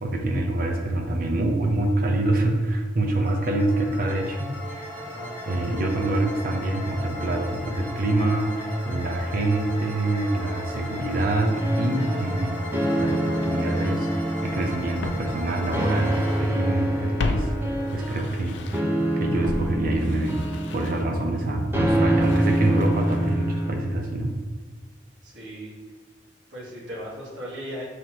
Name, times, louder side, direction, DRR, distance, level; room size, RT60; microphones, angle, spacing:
voice 1, 0.0-4.5 5.4-12.6 13.0-14.1 14.4-17.5 17.9-18.6 19.2-20.4 20.7-24.3, right 2 dB, 50° right, 2 dB, 0.7 m, -25 dB
sound 1, 3.2-18.0, left 1 dB, 10° left, 1.0 m, -36 dB
voice 2, 4.9-5.4 25.2-25.8 26.5-27.8, equal, 85° right, -7 dB, 1.5 m, -37 dB
sound 2, 11.5-23.7, right 1 dB, 15° right, 0.6 m, -26 dB
Walk footsteps, 14.3-14.4 15.0-16.5 16.8-19.0 19.4-23.5 23.7-23.8, left 3 dB, 80° left, 0.4 m, -35 dB
5.7 x 3.3 x 2.9 m, 1.4 s
head